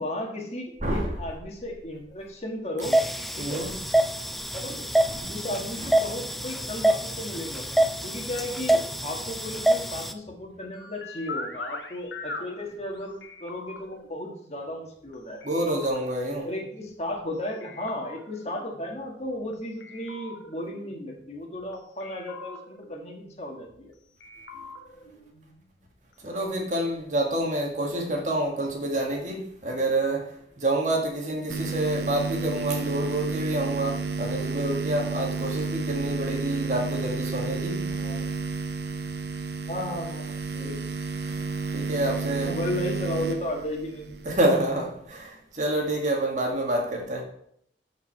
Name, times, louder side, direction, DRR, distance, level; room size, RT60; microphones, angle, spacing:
voice 1, 0.0-3.0 3.3-3.6 4.5-4.8 5.3-15.4 16.4-23.9 37.9-38.2 39.7-40.8 42.4-44.1, left 1 dB, 35° left, 1.7 m, -34 dB
voice 2, 0.8-1.1 3.4-3.7 5.1-5.3 15.4-16.5 26.2-37.9 41.7-42.5 44.2-47.2, right 1 dB, 40° right, 1.7 m, -28 dB
sound 1, 2.8-10.1, right 1 dB, ahead, 0.3 m, -26 dB
sound 2, 9.5-15.1 15.4-17.3 17.6-19.5 19.8-21.7 22.0-23.8 24.2-26.1 26.4-26.5, left 3 dB, 90° left, 1.4 m, -43 dB
sound 3, 31.5-44.4, right 4 dB, 70° right, 0.9 m, -31 dB
13.5 x 4.8 x 4.6 m
head